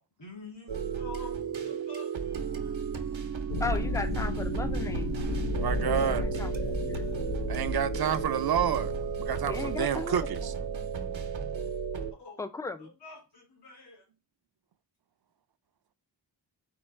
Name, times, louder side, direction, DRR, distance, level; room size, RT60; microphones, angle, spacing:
voice 1, 0.2-2.9 5.7-5.8 6.1-6.2 12.2-12.4 12.8-14.0, left 4 dB, 65° left, 2.6 m, -48 dB
sound 1, 0.7-12.1, right 6 dB, 85° right, 0.8 m, -34 dB
sound 2, 3.5-11.3, left 2 dB, 85° left, 1.0 m, -34 dB
voice 2, 3.6-5.1 5.9-7.1 9.5-10.5 12.4-12.9, left 3 dB, 10° left, 0.3 m, -36 dB
voice 3, 5.6-6.2 7.5-8.9 9.2-10.5, right 8 dB, 55° right, 0.5 m, -29 dB
4.6 x 2.4 x 4.3 m
wide cardioid pair, 55°, 45 cm